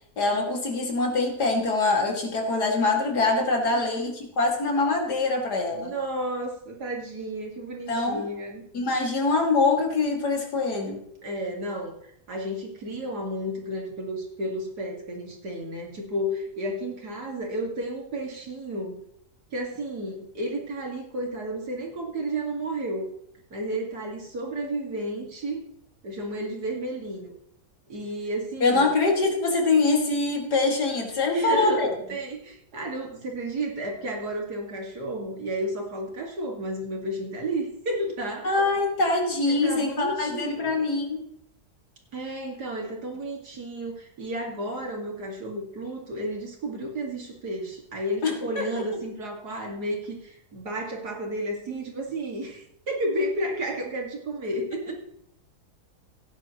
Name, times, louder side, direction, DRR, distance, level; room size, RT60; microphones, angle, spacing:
voice 1, 0.2-5.9 7.9-8.3 8.7-11.0 28.6-31.9 38.4-41.2 48.2-48.8 54.9-55.0, left 3 dB, 90° left, 1 dB, 2.9 m, -24 dB
voice 2, 3.7-4.1 5.7-8.6 11.2-19.0 19.5-23.1 23.5-25.6 26.0-27.3 27.9-28.9 31.3-38.6 39.5-40.8 42.1-54.9, right 1 dB, 80° right, 0 dB, 2.9 m, -32 dB
16.5 x 9.9 x 3.1 m, 0.71 s
omnidirectional pair, 1.7 m